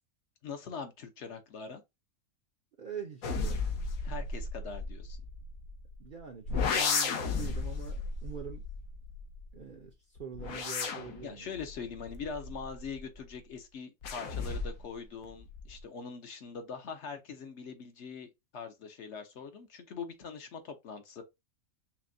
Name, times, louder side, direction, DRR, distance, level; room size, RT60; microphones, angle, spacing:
voice 1, 0.4-1.8 4.0-5.2 11.2-21.2, left 5 dB, 60° left, 1.0 m, -42 dB
voice 2, 2.8-3.6 6.0-8.6 9.5-11.6, right 7 dB, 50° right, 0.6 m, -44 dB
Woosh sfx synth, 3.2-5.9 6.5-9.6 10.2-13.2 14.0-14.9 15.2-15.8, left 4 dB, 80° left, 1.2 m, -34 dB
5.8 x 2.2 x 2.6 m
omnidirectional pair, 1.4 m